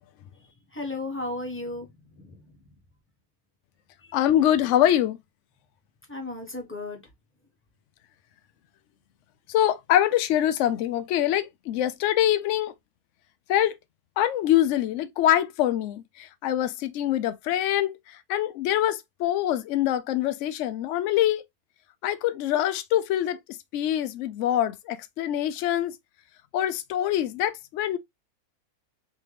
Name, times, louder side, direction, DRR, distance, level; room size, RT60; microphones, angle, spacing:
voice 1, 0.7-1.9 2.2-2.4 4.0-4.1 6.1-7.0, left 2 dB, 10° left, 1.0 m, -34 dB
voice 2, 4.1-5.2 9.5-12.7 13.5-13.7 14.2-17.9 18.3-21.4 22.0-23.4 23.7-25.9 26.5-28.0, left 12 dB, 65° left, 0.8 m, -24 dB
3.6 x 3.2 x 3.2 m
omnidirectional pair, 1.6 m